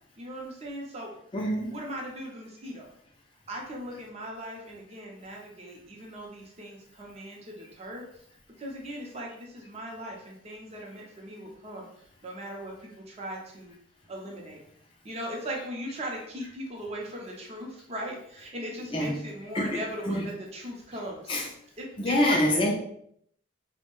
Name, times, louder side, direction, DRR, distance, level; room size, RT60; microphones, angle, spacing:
voice 1, 0.2-1.1 1.7-2.9 3.5-8.0 8.6-11.9 12.2-13.7 14.1-14.6 15.0-21.4 21.8-22.7, right 1 dB, 30° right, -1 dB, 0.6 m, -39 dB
voice 2, 1.3-1.8 18.9-19.2 19.5-20.2 21.3-21.5 22.0-22.7, left 1 dB, 25° left, 0 dB, 0.4 m, -26 dB
2.6 x 2.1 x 3.0 m, 0.67 s
head